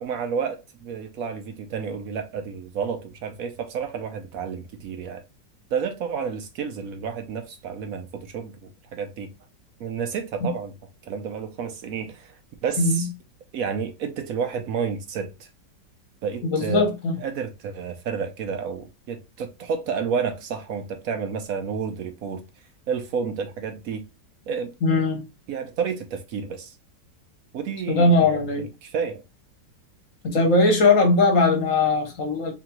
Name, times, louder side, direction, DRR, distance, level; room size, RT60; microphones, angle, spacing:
voice 1, 0.0-5.2 5.7-9.3 9.8-10.7 11.0-13.1 13.5-15.5 16.2-16.8 17.2-22.4 22.9-24.0 24.5-24.7 25.5-26.7 27.5-29.2, right 6 dB, 70° right, 0.9 m, -30 dB
voice 2, 12.8-13.1 16.4-17.2 24.8-25.3 27.9-28.7 30.2-32.5, left 2 dB, 50° left, 1.4 m, -20 dB
3.7 x 3.4 x 2.9 m
omnidirectional pair, 1.9 m